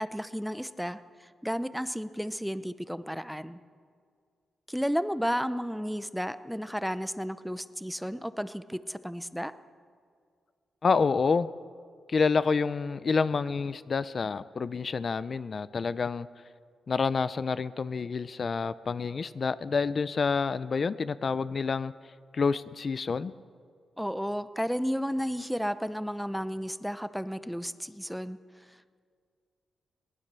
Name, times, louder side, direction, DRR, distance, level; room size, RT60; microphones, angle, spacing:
voice 1, 0.0-3.6 4.7-9.5 24.0-28.4, equal, ahead, 13 dB, 0.7 m, -33 dB
voice 2, 10.8-11.5 12.1-16.3 16.9-21.9 22.3-23.3, left 5 dB, 45° left, 15 dB, 0.5 m, -28 dB
22.0 x 19.5 x 6.8 m, 2.1 s
wide cardioid pair, 120°, 0 cm